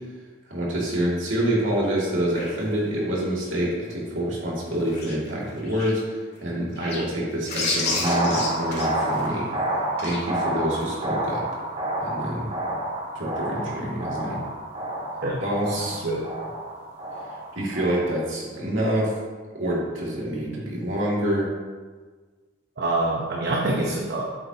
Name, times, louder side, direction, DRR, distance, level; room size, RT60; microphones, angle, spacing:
voice 1, 0.5-9.5 10.0-11.4 12.0-12.5 13.1-14.4 15.4-16.0 17.5-19.1 19.5-21.5, right 1 dB, 75° right, -5 dB, 2.5 m, -27 dB
sound 1, 2.3-3.0 4.7-5.9 6.8-7.1 7.4-9.3 10.0-10.2 10.8-10.9, left 3 dB, 55° left, 2.0 m, -30 dB
sound 2, 7.8-18.0, right 1 dB, 30° right, 1.6 m, -29 dB
voice 2, 22.8-24.2, right 2 dB, 55° right, -2 dB, 1.0 m, -25 dB
8.4 x 7.4 x 2.9 m, 1.4 s
head